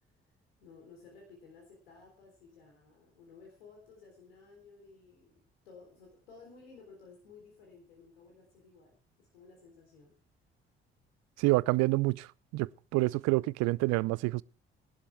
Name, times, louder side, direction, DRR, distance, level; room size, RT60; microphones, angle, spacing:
voice 1, 0.6-10.2, left 4 dB, 80° left, 3.6 m, -56 dB
voice 2, 11.4-14.4, right 22 dB, 65° right, 0.5 m, -28 dB
20.5 x 11.5 x 3.4 m
figure-of-eight pair, 45°, 29 cm